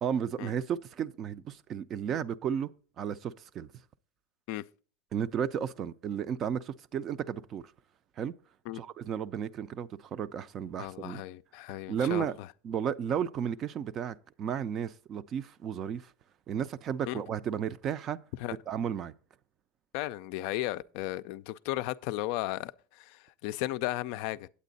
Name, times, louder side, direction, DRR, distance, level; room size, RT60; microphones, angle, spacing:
voice 1, 0.0-2.7 3.0-3.7 5.1-7.6 8.2-8.3 8.7-11.2 11.7-12.4 12.6-16.1 16.5-18.2 18.7-19.1, right 8 dB, 40° right, 0.4 m, -33 dB
voice 2, 10.8-12.5 17.1-17.2 18.4-18.6 19.9-24.5, left 16 dB, 65° left, 0.3 m, -35 dB
8.4 x 8.2 x 3.9 m
supercardioid pair, 110°, 0 cm